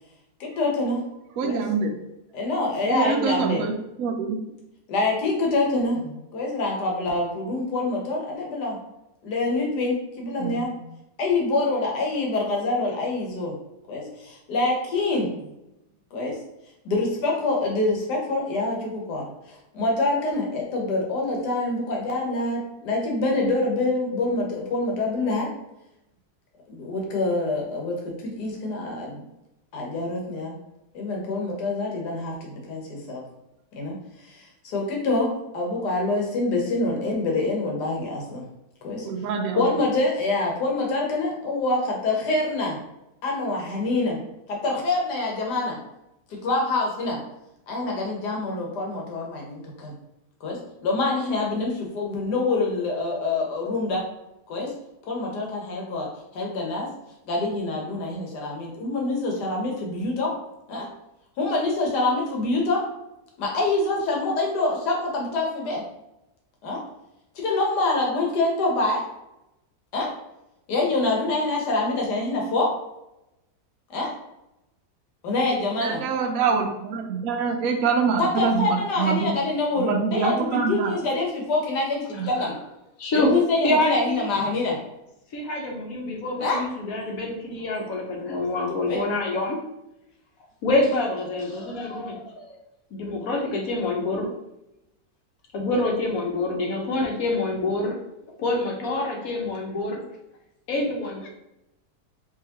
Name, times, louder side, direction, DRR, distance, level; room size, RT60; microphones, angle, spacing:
voice 1, 0.4-1.0 1.4-1.6 2.3-3.6 4.9-6.0 6.3-8.8 9.2-10.7 11.2-13.5 13.9-15.5 16.1-16.4 16.8-25.5 26.7-28.0 28.2-29.2 29.7-30.5 30.9-33.2 33.7-34.0 34.2-38.4 38.8-39.1 39.6-42.8 43.2-44.2 44.5-45.8 46.3-47.2 47.7-49.9 50.4-54.0 54.5-54.7 55.0-56.9 57.2-60.3 60.7-60.9 61.4-62.9 63.4-65.8 66.6-66.8 67.3-69.1 69.9-70.1 70.7-72.7 73.9-74.1 75.2-76.0 78.2-82.5 83.1-84.8 86.4-86.6 88.9-89.0, left 2 dB, 80° left, -1 dB, 1.6 m, -26 dB
voice 2, 1.4-1.9 2.8-3.7 4.0-4.4 10.4-10.8 39.0-39.8 75.8-79.3 79.8-81.0 82.1-82.3 84.4-84.5, right 5 dB, 70° right, 2 dB, 1.0 m, -25 dB
voice 3, 83.0-83.3 83.6-84.2 85.3-89.6 90.6-92.6 92.9-94.3 95.5-98.0 98.4-100.0 100.7-101.3, left 2 dB, 65° left, 0 dB, 1.2 m, -26 dB
4.8 x 2.9 x 2.9 m, 0.89 s
omnidirectional pair, 1.8 m